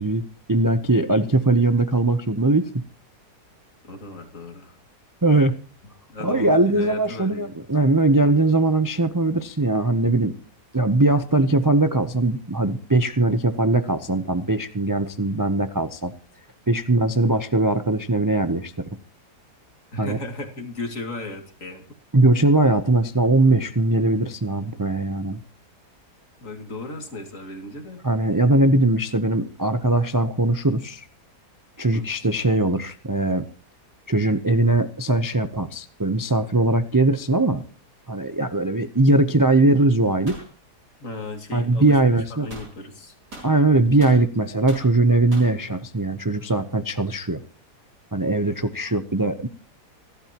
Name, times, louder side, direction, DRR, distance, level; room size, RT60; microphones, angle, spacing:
voice 1, 0.0-2.7 5.2-5.6 6.2-10.3 10.7-16.1 16.7-18.7 20.0-20.2 22.1-25.4 28.0-31.1 31.8-33.5 34.1-37.6 38.1-40.4 41.5-42.5 43.4-47.4 48.1-49.5, right 2 dB, 30° right, 9 dB, 0.3 m, -20 dB
voice 2, 3.8-4.8 6.1-7.6 19.9-21.8 26.4-28.0 31.9-32.0 41.0-43.1, left 2 dB, 50° left, 4 dB, 2.7 m, -36 dB
sound 1, 40.3-40.5 42.5-42.7 43.3-44.2 44.7-44.9 45.3-45.6, right 1 dB, 75° right, 7.6 m, -40 dB
28.0 x 12.0 x 2.9 m, 0.37 s
omnidirectional pair, 1.8 m